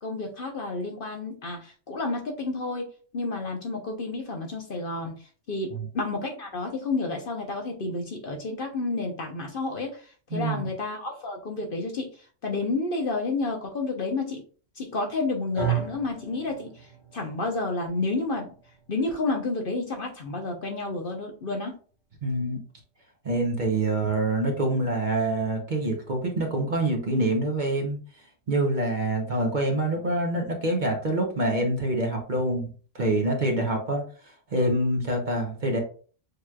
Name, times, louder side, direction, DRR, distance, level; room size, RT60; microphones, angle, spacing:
voice 1, 0.0-2.9 3.1-5.1 5.5-10.0 10.3-12.1 12.4-14.4 14.8-16.7 17.1-18.5 18.9-21.7, left 3 dB, 50° left, 3 dB, 0.9 m, -30 dB
voice 2, 10.3-10.7 22.2-22.6 23.2-28.0 28.5-34.0 34.5-35.8, right 1 dB, 40° right, 2 dB, 1.0 m, -26 dB
sound 1, 15.6-23.8, right 9 dB, 25° right, 1.4 m, -38 dB
6.5 x 3.0 x 2.3 m, 0.39 s
omnidirectional pair, 1.3 m